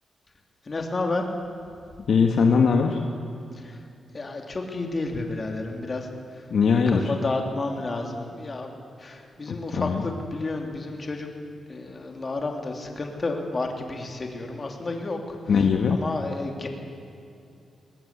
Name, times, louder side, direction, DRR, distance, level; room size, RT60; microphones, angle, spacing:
voice 1, 0.6-1.2 3.5-3.8 4.1-6.5 6.9-8.7 9.0-11.3 11.7-15.4 15.9-16.7, left 2 dB, 35° left, 2 dB, 3.2 m, -31 dB
voice 2, 2.1-3.0 6.5-7.1 9.5-10.0 15.5-16.0, left 5 dB, 65° left, 3 dB, 1.6 m, -21 dB
21.5 x 20.0 x 8.4 m, 2.5 s
cardioid pair, 100°, 0 cm